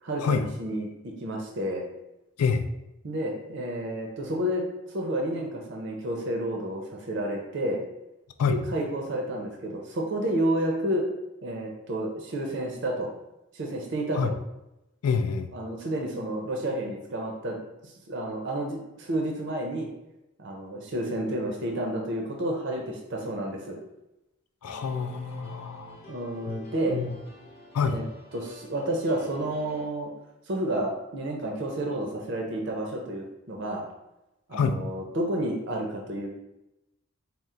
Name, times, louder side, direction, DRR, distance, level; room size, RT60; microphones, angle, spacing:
voice 1, 0.0-1.8 3.0-7.8 8.5-11.1 11.4-13.1 13.5-14.3 15.5-19.9 20.4-23.8 26.1-27.0 27.8-28.0 28.3-30.1 30.5-33.8 34.5-36.3, right 1 dB, 55° right, 0 dB, 0.5 m, -30 dB
voice 2, 15.0-15.5 24.6-26.0 26.5-26.6 26.9-27.2 27.7-28.0 34.5-34.8, left 5 dB, 85° left, 8 dB, 0.3 m, -27 dB
sound 1, 24.6-29.9, left 1 dB, 30° left, 0.7 m, -48 dB
4.2 x 2.0 x 3.6 m, 0.93 s
head